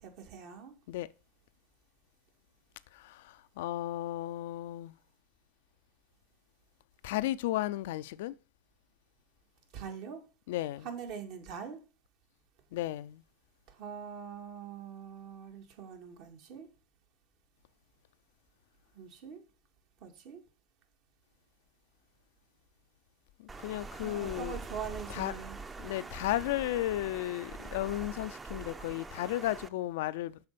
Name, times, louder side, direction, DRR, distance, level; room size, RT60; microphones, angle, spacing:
voice 1, 0.0-0.8 9.7-10.2 10.8-11.8 13.7-16.7 18.9-19.4 20.0-20.4 24.0-25.6, right 7 dB, 60° right, 2.0 m, -43 dB
voice 2, 2.9-4.9 7.0-8.3 10.5-10.9 12.7-13.2 23.4-24.6 25.1-25.3 25.8-30.4, left 15 dB, 75° left, 0.4 m, -34 dB
Water, 23.5-29.7, right 3 dB, 20° right, 0.7 m, -44 dB
6.9 x 4.2 x 6.7 m
hypercardioid pair, 90°, 0 cm